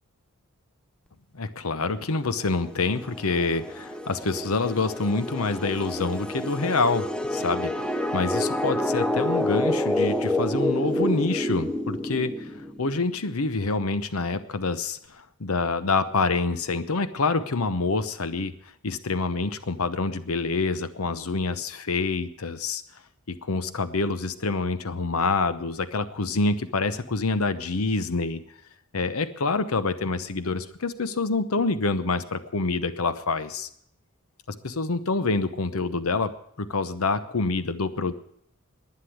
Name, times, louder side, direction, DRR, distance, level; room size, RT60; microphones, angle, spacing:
voice 1, 1.3-18.5 18.8-22.8 23.3-28.4 28.9-33.7 34.5-36.3 36.6-38.1, left 3 dB, 80° left, 13 dB, 0.9 m, -27 dB
sound 1, 2.5-13.0, left 1 dB, 5° left, 0.7 m, -28 dB
11.5 x 9.8 x 10.0 m, 0.70 s
head